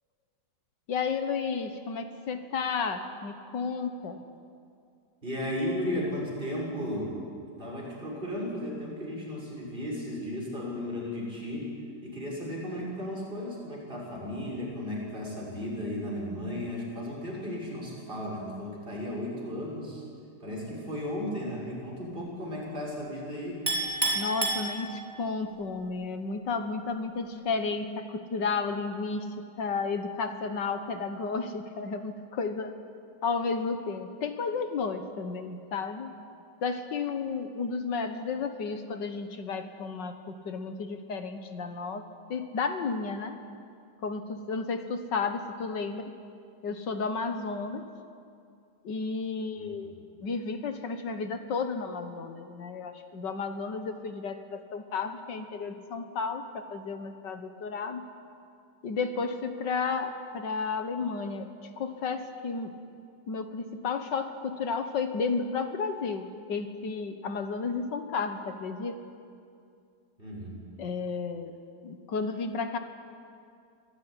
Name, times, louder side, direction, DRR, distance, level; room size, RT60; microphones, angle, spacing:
voice 1, 0.9-4.2 24.1-32.7 33.2-36.1 36.6-43.4 44.0-46.1 46.6-47.8 48.8-58.0 58.8-61.5 61.8-62.7 63.3-69.0 70.8-71.6 71.8-72.8, left 4 dB, 75° left, 8 dB, 2.0 m, -32 dB
voice 2, 5.2-7.2 7.6-11.7 12.0-20.0 20.4-23.6 49.6-49.7 70.2-70.6, left 1 dB, 30° right, -3 dB, 6.7 m, -35 dB
Chink clink, 23.7-25.3, right 2 dB, 10° right, 4.8 m, -29 dB
25.0 x 17.0 x 9.9 m, 2.3 s
omnidirectional pair, 1.9 m